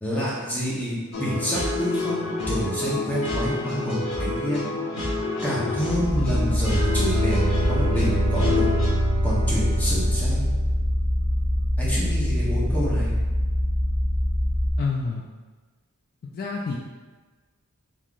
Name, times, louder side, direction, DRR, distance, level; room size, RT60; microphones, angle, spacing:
voice 1, 0.0-4.7 5.4-8.7 9.2-10.5 11.8-13.1, equal, 10° left, -7 dB, 0.9 m, -28 dB
sound 1, 1.1-8.9, left 3 dB, 90° left, 1.0 m, -28 dB
sound 2, 6.0-14.7, equal, 70° left, 1.1 m, -24 dB
Bowed string instrument, 6.3-11.3, right 4 dB, 75° right, 0.3 m, -30 dB
voice 2, 14.8-15.2 16.3-16.8, left 4 dB, 40° left, -1 dB, 0.3 m, -27 dB
3.7 x 3.0 x 2.4 m, 1.3 s
head